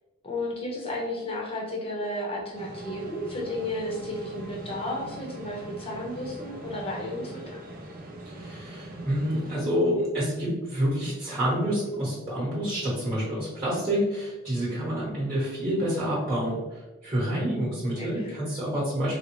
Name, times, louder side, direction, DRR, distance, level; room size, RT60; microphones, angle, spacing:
voice 1, 0.2-7.6 18.0-18.3, left 1 dB, 25° left, -2 dB, 0.7 m, -33 dB
sound 1, 2.5-9.6, right 1 dB, 40° right, 0.5 m, -41 dB
voice 2, 8.2-19.2, equal, 25° right, -7 dB, 1.1 m, -28 dB
3.8 x 2.0 x 3.0 m, 1.1 s
head